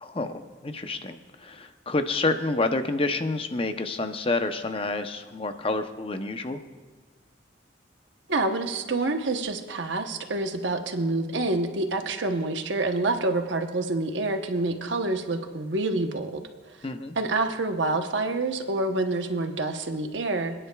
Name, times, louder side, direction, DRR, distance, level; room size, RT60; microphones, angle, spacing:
voice 1, 0.0-6.6 16.8-17.2, left 2 dB, 30° left, 8 dB, 0.7 m, -28 dB
voice 2, 8.3-16.4 17.1-20.5, right 2 dB, 80° right, 6 dB, 1.0 m, -27 dB
27.0 x 9.9 x 2.3 m, 1.3 s
head